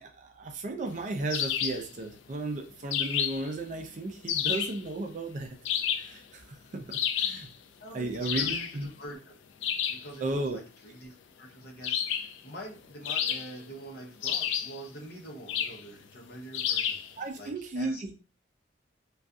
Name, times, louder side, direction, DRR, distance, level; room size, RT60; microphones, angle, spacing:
voice 1, 0.0-5.5 6.0-7.5 7.9-8.9 10.2-10.6 17.2-18.1, right 2 dB, 40° right, 4 dB, 0.4 m, -34 dB
sound 1, 1.3-1.9 2.9-3.5 4.3-4.8 5.6-6.2 6.9-7.5 8.2-8.8 9.6-10.1 11.8-12.4 13.0-13.7 14.2-14.8 15.5-15.8 16.5-17.1, left 9 dB, 75° left, 0.3 m, -30 dB
voice 2, 7.8-9.3 9.9-17.0 17.4-18.0, right 1 dB, 55° left, 0 dB, 0.8 m, -45 dB
2.6 x 2.3 x 2.3 m, 0.33 s
head